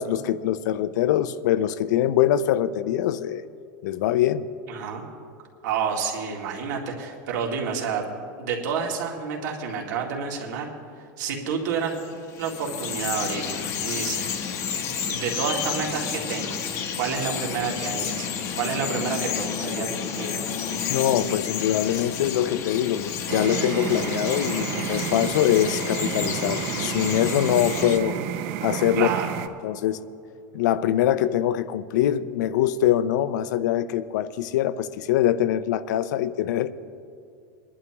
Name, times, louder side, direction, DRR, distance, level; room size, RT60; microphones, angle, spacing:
voice 1, 0.0-3.4 3.8-4.5 20.9-28.2 28.6-29.1 29.6-30.0 30.5-36.7, left 11 dB, 75° left, 15 dB, 0.5 m, -23 dB
voice 2, 4.7-5.0 5.6-8.0 8.4-10.7 11.2-11.9 12.4-14.3 15.1-16.6 17.0-18.3 18.6-20.4 29.0-29.4, right 6 dB, 75° right, -1 dB, 2.2 m, -29 dB
Bird vocalization bird call bird song, 11.8-28.0, left 7 dB, 30° left, 0.8 m, -31 dB
sound 1, 23.3-29.5, right 10 dB, 45° right, 0.5 m, -31 dB
22.5 x 11.0 x 2.9 m, 2.4 s
supercardioid pair, 175°, 10 cm